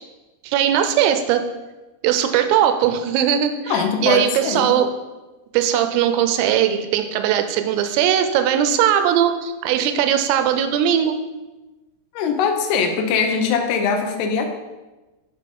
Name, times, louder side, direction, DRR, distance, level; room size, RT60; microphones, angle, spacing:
voice 1, 0.4-1.4 2.0-4.9 5.5-11.2, right 10 dB, 85° right, 8 dB, 3.3 m, -19 dB
voice 2, 3.7-4.7 12.1-14.5, left 6 dB, 75° left, 3 dB, 2.5 m, -21 dB
11.5 x 3.9 x 5.4 m, 1.1 s
omnidirectional pair, 5.8 m